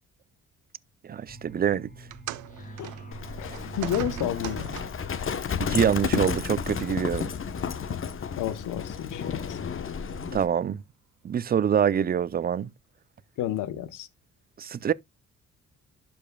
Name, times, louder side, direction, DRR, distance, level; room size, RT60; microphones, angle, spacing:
voice 1, 1.0-1.9 5.6-7.3 10.3-10.8 11.2-12.7 14.6-14.9, right 8 dB, 30° right, 0.5 m, -25 dB
sound 1, 1.3-8.0, right 2 dB, 25° left, 2.2 m, -47 dB
sound 2, 2.1-5.2 6.1-6.3 7.2-7.3, right 14 dB, 80° right, 0.7 m, -39 dB
Livestock farm animals working animals, 3.1-10.5, left 7 dB, 45° left, 1.0 m, -32 dB
voice 2, 3.4-4.7 8.4-9.6 13.4-14.1, left 12 dB, 85° left, 1.0 m, -31 dB
12.0 x 5.3 x 2.3 m
cardioid pair, 90°, 30 cm